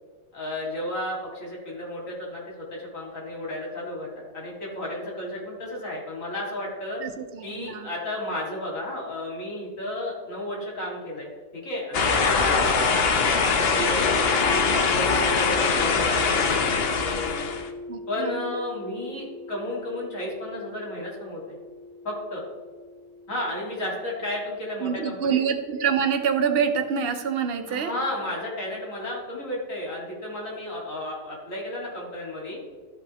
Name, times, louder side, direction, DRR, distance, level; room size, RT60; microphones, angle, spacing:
voice 1, 0.3-7.0 7.4-14.3 14.8-17.5 18.1-21.6 22.0-22.4 23.3-25.4 27.7-32.6, left 1 dB, 75° left, -4 dB, 2.7 m, -33 dB
voice 2, 7.0-7.9 17.9-18.3 24.8-27.9, right 7 dB, 55° right, 6 dB, 0.9 m, -26 dB
sound 1, 11.9-17.7, left 5 dB, 55° left, 0.9 m, -22 dB
sound 2, 13.8-25.7, left 1 dB, 5° left, 1.5 m, -38 dB
13.0 x 5.8 x 3.0 m, 1.5 s
omnidirectional pair, 1.4 m